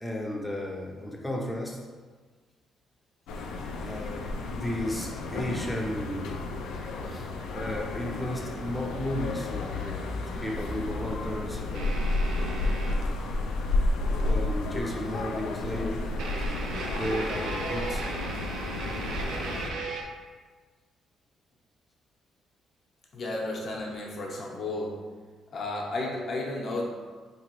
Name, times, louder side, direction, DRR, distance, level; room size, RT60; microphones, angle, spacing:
voice 1, 0.0-1.9 3.8-6.5 7.1-7.3 7.5-12.0 14.2-16.1 17.0-18.1, left 1 dB, 5° left, -2 dB, 0.7 m, -34 dB
sound 1, 3.3-19.7, left 2 dB, 85° left, 0.4 m, -31 dB
sound 2, 11.7-13.0 14.2-14.3 14.6-14.7 16.2-20.0, right 3 dB, 85° right, 0.5 m, -36 dB
voice 2, 23.1-25.0 25.5-26.9, left 2 dB, 55° left, -2 dB, 0.8 m, -33 dB
3.8 x 2.9 x 3.0 m, 1.4 s
cardioid pair, 90°, 0 cm